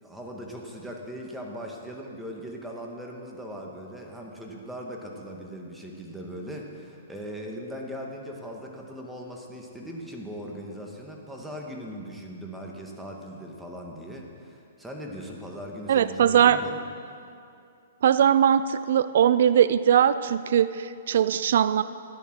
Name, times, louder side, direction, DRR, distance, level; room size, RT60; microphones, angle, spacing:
voice 1, 0.0-16.8, equal, 5° right, -1 dB, 1.7 m, -39 dB
voice 2, 15.9-16.6 18.0-21.8, right 9 dB, 65° right, 14 dB, 0.4 m, -20 dB
12.5 x 10.5 x 6.1 m, 2.5 s
hypercardioid pair, 140°, 0 cm